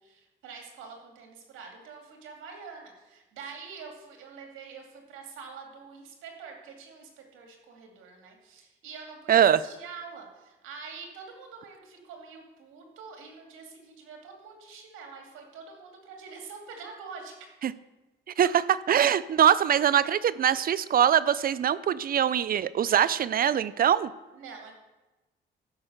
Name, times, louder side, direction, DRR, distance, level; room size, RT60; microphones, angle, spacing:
voice 1, 0.0-17.3 24.3-24.7, right 5 dB, 90° right, 2 dB, 2.4 m, -45 dB
voice 2, 9.3-9.6 17.6-17.7 18.4-18.5 18.9-24.1, right 9 dB, 50° right, 18 dB, 0.5 m, -22 dB
13.5 x 5.5 x 6.6 m, 1.1 s
cardioid pair, 90°, 20 cm